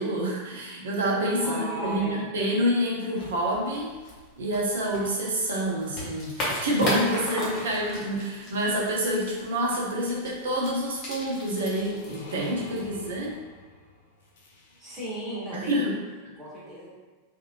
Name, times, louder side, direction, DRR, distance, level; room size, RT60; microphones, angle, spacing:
voice 1, 0.0-3.9 4.4-13.4 15.5-15.9, equal, 65° right, -2 dB, 0.6 m, -27 dB
voice 2, 1.4-2.2 14.8-15.9 16.4-16.9, right 1 dB, 15° right, -9 dB, 1.3 m, -36 dB
sound 1, 3.1-13.4, left 1 dB, 30° left, 0.9 m, -37 dB
sound 2, 11.3-15.3, left 2 dB, 60° left, 0.5 m, -48 dB
2.6 x 2.5 x 2.9 m, 1.4 s
figure-of-eight pair, 90°, 0 cm